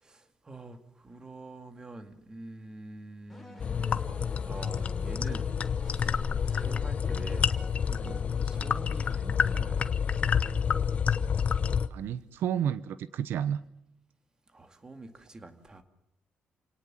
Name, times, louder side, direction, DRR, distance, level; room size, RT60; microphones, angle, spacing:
voice 1, 0.0-4.1 4.4-5.5 5.8-7.5 7.9-9.9 14.5-15.8, right 2 dB, 20° right, 8 dB, 2.2 m, -46 dB
sound 1, 3.3-9.9, left 2 dB, 5° left, 3.6 m, -48 dB
Coffee Bubbling Milk Frothing Steam Releasing, 3.6-11.9, left 7 dB, 35° left, 0.9 m, -29 dB
sound 2, 5.6-8.0, left 6 dB, 65° left, 1.0 m, -41 dB
voice 2, 11.9-13.6, right 9 dB, 80° right, 14 dB, 0.9 m, -31 dB
28.5 x 18.5 x 7.6 m, 0.85 s
cardioid pair, 165°, 4 cm